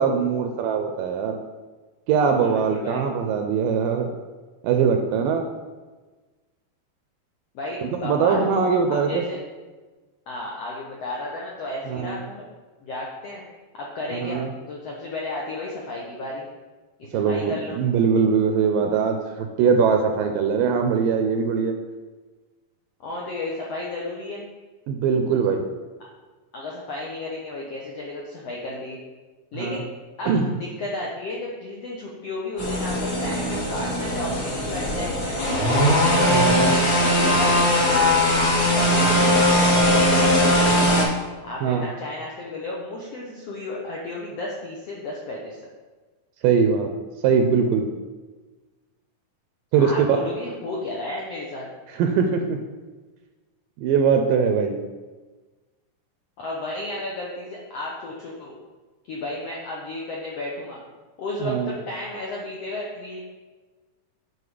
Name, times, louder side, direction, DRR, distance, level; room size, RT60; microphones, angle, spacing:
voice 1, 0.0-1.4 2.1-4.1 4.6-5.5 7.8-9.2 11.9-12.2 14.1-14.5 17.1-21.7 24.9-25.7 29.5-29.8 30.3-30.5 36.3-36.7 41.6-41.9 46.4-46.9 47.2-47.9 49.7-50.1 52.0-52.6 53.8-54.8 61.4-61.8, right 6 dB, 80° right, 5 dB, 2.1 m, -21 dB
voice 2, 2.2-3.0 7.5-8.5 8.9-9.4 10.3-12.5 12.8-13.4 13.7-16.5 17.0-17.8 23.0-24.4 26.5-29.0 29.5-29.8 30.2-36.0 36.5-37.5 38.3-39.4 39.7-41.1 41.4-45.6 49.8-51.7 56.4-58.5 59.1-60.8 61.2-63.2, left 2 dB, 85° left, -3 dB, 1.4 m, -33 dB
sound 1, 32.6-41.0, equal, 40° left, 1.6 m, -20 dB
9.5 x 5.0 x 4.9 m, 1.3 s
omnidirectional pair, 4.3 m